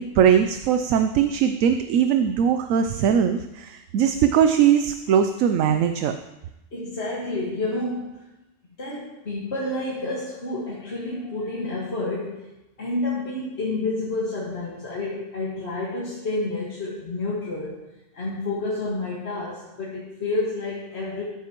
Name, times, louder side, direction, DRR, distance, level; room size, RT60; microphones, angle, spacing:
voice 1, 0.0-6.1, right 8 dB, 75° right, 8 dB, 1.0 m, -20 dB
voice 2, 6.7-8.3 8.8-12.5 12.8-17.8 18.1-21.2, left 2 dB, 50° left, -6 dB, 1.9 m, -29 dB
13.5 x 9.5 x 3.0 m, 0.97 s
omnidirectional pair, 1.4 m